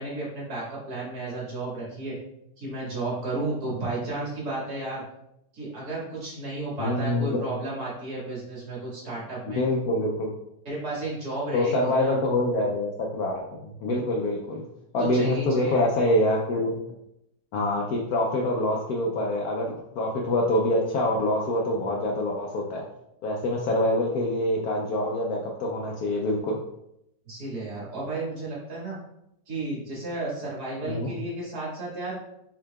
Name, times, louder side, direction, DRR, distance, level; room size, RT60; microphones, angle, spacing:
voice 1, 0.0-2.2 2.6-5.0 5.5-9.6 10.7-12.2 15.0-15.8 27.3-29.0 29.5-32.2, right 2 dB, 55° right, -7 dB, 2.3 m, -33 dB
voice 2, 6.8-7.4 9.5-10.3 11.5-14.6 14.9-16.8 17.5-22.8 23.2-26.6 30.8-31.1, left 1 dB, 65° left, -1 dB, 0.9 m, -25 dB
6.0 x 3.8 x 2.3 m, 0.81 s
omnidirectional pair, 2.0 m